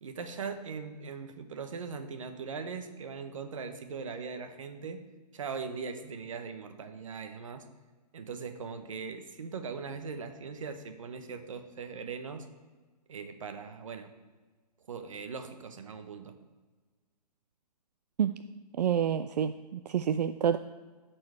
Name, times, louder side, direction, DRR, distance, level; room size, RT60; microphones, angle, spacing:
voice 1, 0.0-5.0 5.3-7.6 8.1-12.4 13.1-14.1 14.9-16.3, right 5 dB, 50° right, 8 dB, 0.9 m, -40 dB
voice 2, 18.8-20.6, right 8 dB, 75° right, 10 dB, 0.4 m, -28 dB
12.5 x 4.5 x 4.9 m, 1.4 s
hypercardioid pair, 175°, 21 cm